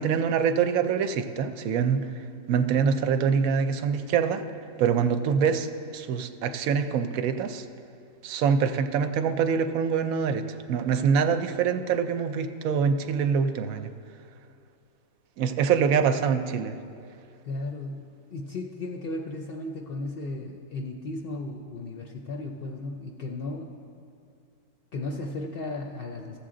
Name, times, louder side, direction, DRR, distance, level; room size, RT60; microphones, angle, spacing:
voice 1, 0.0-2.1 2.5-4.4 4.8-7.6 8.2-10.4 10.7-13.9 15.4-16.8, right 6 dB, 75° right, 9 dB, 1.0 m, -25 dB
voice 2, 17.4-23.7 24.9-26.4, left 2 dB, 55° left, 2 dB, 0.6 m, -35 dB
14.5 x 7.4 x 3.7 m, 2.5 s
omnidirectional pair, 1.5 m